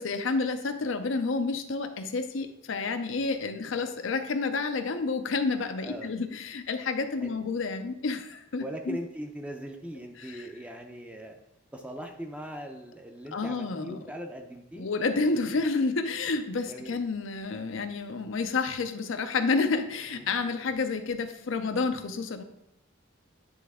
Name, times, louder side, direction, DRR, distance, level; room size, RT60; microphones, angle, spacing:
voice 1, 0.0-9.0 10.2-10.5 13.3-14.0 14.8-22.4, left 4 dB, 70° left, 8 dB, 0.5 m, -30 dB
voice 2, 5.8-6.1 7.2-7.3 8.6-11.4 11.7-14.9 16.7-17.0 20.1-20.6, equal, 5° right, 3 dB, 0.5 m, -40 dB
9.6 x 3.3 x 3.6 m, 0.84 s
head